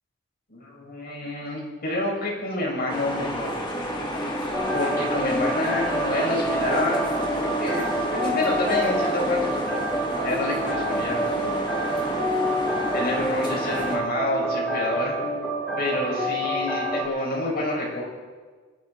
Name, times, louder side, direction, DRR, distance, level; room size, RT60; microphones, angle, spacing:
voice 1, 0.5-3.5 4.7-7.0 7.4-7.8 8.1-9.8 10.2-11.5 12.7-15.2 15.8-18.0, left 2 dB, 50° left, -2 dB, 5.8 m, -28 dB
sound 1, 2.9-14.0, equal, 25° left, 2.1 m, -30 dB
sound 2, 4.5-17.0, right 1 dB, ahead, 4.7 m, -28 dB
25.5 x 10.5 x 4.7 m, 1.4 s
head